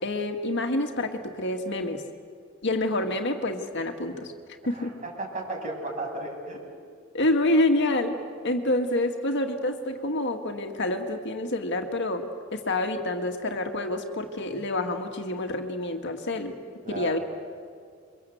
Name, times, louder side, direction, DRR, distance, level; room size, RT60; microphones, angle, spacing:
voice 1, 0.0-2.0 2.6-4.3 4.7-4.9 7.1-8.2 8.4-16.6 16.9-17.2, left 1 dB, 60° left, 5 dB, 2.0 m, -27 dB
voice 2, 4.6-6.6 16.8-17.2, right 2 dB, 40° right, 1 dB, 6.8 m, -35 dB
29.0 x 24.0 x 8.0 m, 2.1 s
head